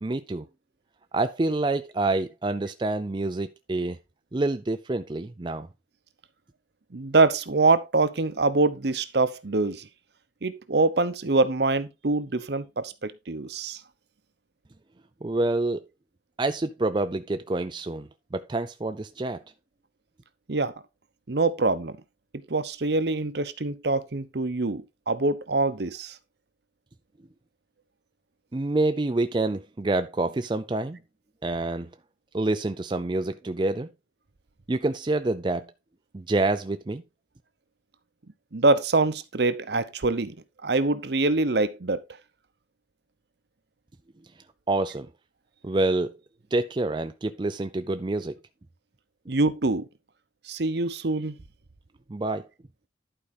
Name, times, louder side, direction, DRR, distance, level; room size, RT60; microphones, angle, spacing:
voice 1, 0.0-0.5 1.1-4.0 4.3-5.7 15.2-15.8 16.4-19.4 28.5-31.0 31.4-31.9 32.3-33.9 34.7-35.7 36.1-37.0 44.7-45.1 45.6-46.1 46.5-48.4 52.1-52.5, right 2 dB, 25° right, 0.4 m, -27 dB
voice 2, 6.9-9.9 10.4-13.8 20.5-20.7 21.3-22.0 22.3-26.2 38.5-40.3 40.6-42.0 49.3-49.9 50.4-51.4, right 3 dB, 60° right, 0.8 m, -24 dB
11.5 x 4.8 x 4.0 m
head